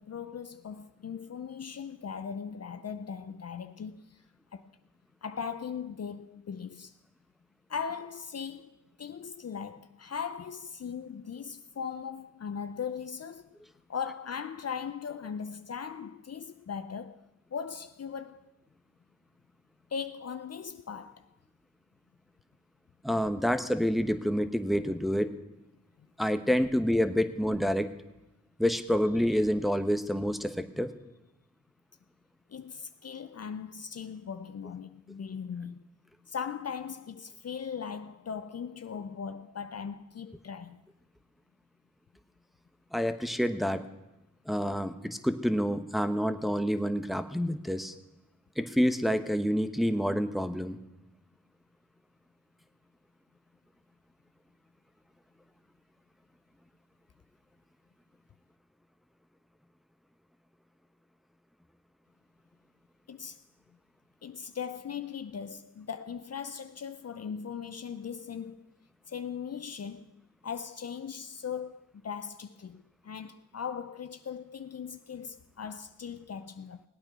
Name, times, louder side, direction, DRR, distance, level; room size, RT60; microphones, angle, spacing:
voice 1, 0.0-4.2 4.5-4.7 5.2-7.0 7.7-13.5 13.9-17.2 17.5-18.5 19.9-21.3 32.5-35.9 36.3-40.8 63.1-63.4 64.2-68.6 69.1-70.1 70.4-76.8, left 7 dB, 50° left, 0.6 m, -39 dB
voice 2, 23.0-25.3 26.2-27.9 28.6-30.9 42.9-43.8 44.5-47.9 48.6-50.8, equal, ahead, 1.1 m, -28 dB
18.5 x 8.8 x 6.0 m
cardioid pair, 50°, 33 cm